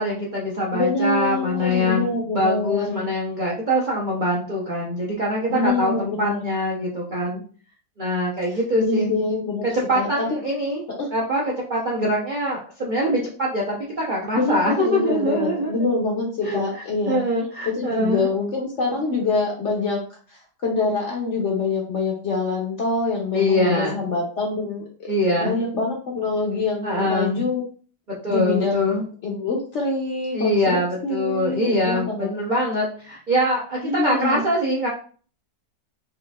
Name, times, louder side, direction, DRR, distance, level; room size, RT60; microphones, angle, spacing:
voice 1, 0.0-2.1 2.3-7.4 8.0-9.1 9.7-10.8 11.1-15.7 16.4-18.3 23.3-24.0 25.1-25.6 26.8-27.4 28.2-29.0 30.3-34.9, equal, 60° right, -3 dB, 0.5 m, -23 dB
voice 2, 0.7-3.0 5.5-6.5 8.5-9.7 9.9-10.3 11.0-11.1 14.3-17.2 17.7-25.1 25.4-27.6 28.3-32.3 33.8-34.5, left 3 dB, 60° left, -1 dB, 0.8 m, -25 dB
4.7 x 2.5 x 2.3 m, 0.42 s
omnidirectional pair, 1.9 m